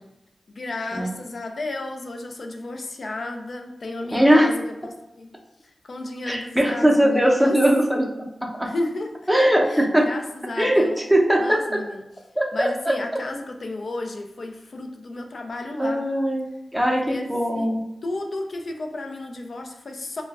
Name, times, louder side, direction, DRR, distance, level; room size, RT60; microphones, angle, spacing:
voice 1, 0.5-5.3 5.8-7.6 8.6-9.2 9.7-11.0 11.4-12.0 12.5-16.1 16.9-17.3 17.5-17.7 18.0-20.2, left 2 dB, 65° left, 4 dB, 0.4 m, -33 dB
voice 2, 4.1-4.5 6.3-8.1 8.5-8.7 9.3-10.1 10.6-11.6 12.4-12.9 15.8-16.5 16.7-17.8, equal, 5° right, -1 dB, 0.6 m, -20 dB
2.2 x 2.0 x 3.4 m, 0.92 s
cardioid pair, 60°, 0 cm